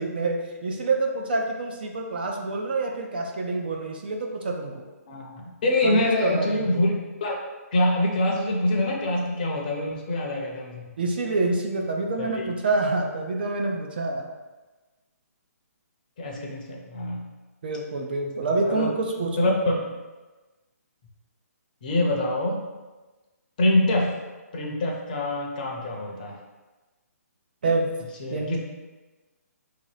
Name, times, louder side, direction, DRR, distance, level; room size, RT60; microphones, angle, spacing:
voice 1, 0.0-4.8 5.8-6.9 11.0-14.3 17.6-19.6 27.6-27.9 28.3-28.6, right 3 dB, 35° right, 2 dB, 0.4 m, -27 dB
voice 2, 5.1-6.9 7.2-7.4 7.7-10.9 12.2-12.5 16.2-17.2 18.6-18.9 19.4-19.8 21.8-22.6 23.6-24.1 24.5-26.3 28.2-28.6, left 1 dB, 30° left, -1 dB, 0.7 m, -25 dB
3.6 x 2.9 x 4.8 m, 1.2 s
hypercardioid pair, 170°, 9 cm